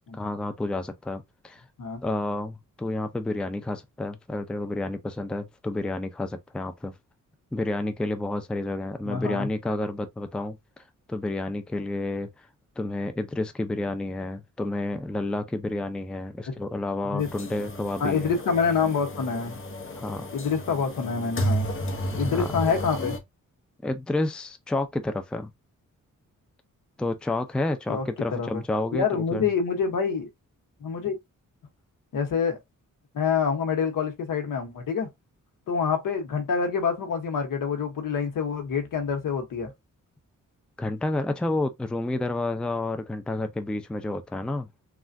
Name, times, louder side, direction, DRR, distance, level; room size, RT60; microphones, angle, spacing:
voice 1, 0.1-1.6 2.0-6.9 7.5-10.6 11.1-12.5 12.8-18.3 19.9-20.3 22.3-22.5 23.8-25.5 27.0-29.5 40.8-44.7, left 2 dB, 5° left, 0.4 m, -30 dB
voice 2, 9.0-9.5 16.5-16.6 17.1-17.3 18.0-19.6 20.3-21.7 22.1-23.2 27.9-28.1 28.3-28.6 28.9-30.3 30.8-31.2 32.1-32.6 33.1-35.1 35.7-39.7, left 6 dB, 80° left, 1.0 m, -26 dB
sound 1, 17.2-23.2, equal, 40° left, 0.8 m, -32 dB
3.3 x 2.4 x 2.5 m
cardioid pair, 80°, 32 cm